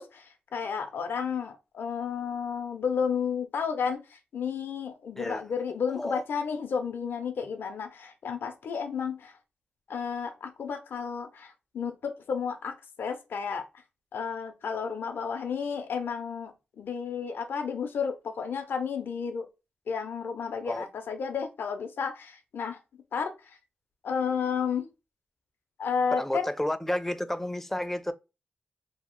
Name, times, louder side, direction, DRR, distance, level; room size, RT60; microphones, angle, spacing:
voice 1, 0.0-9.3 9.9-13.6 14.1-19.5 19.9-22.8 23.1-23.5 24.0-24.9 25.8-26.5, left 6 dB, 80° left, 0.5 m, -32 dB
voice 2, 26.1-28.1, left 1 dB, 10° left, 0.4 m, -31 dB
2.7 x 2.0 x 2.9 m
cardioid pair, 55°, 4 cm